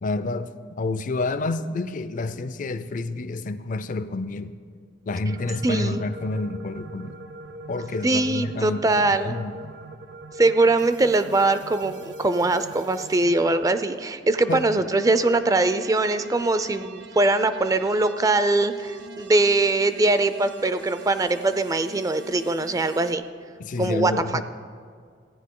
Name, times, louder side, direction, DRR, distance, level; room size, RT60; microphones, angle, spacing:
voice 1, 0.0-0.5 0.8-4.6 5.1-7.2 7.7-8.8 9.2-9.5 14.5-14.7 23.6-24.4, left 2 dB, 45° left, 0.4 m, -29 dB
sound 1, 5.3-13.7 14.2-23.1, right 2 dB, 70° right, 0.6 m, -42 dB
voice 2, 5.6-6.0 8.0-9.4 10.4-23.2 23.8-24.1, right 2 dB, 20° right, 0.3 m, -22 dB
15.0 x 9.7 x 3.7 m
head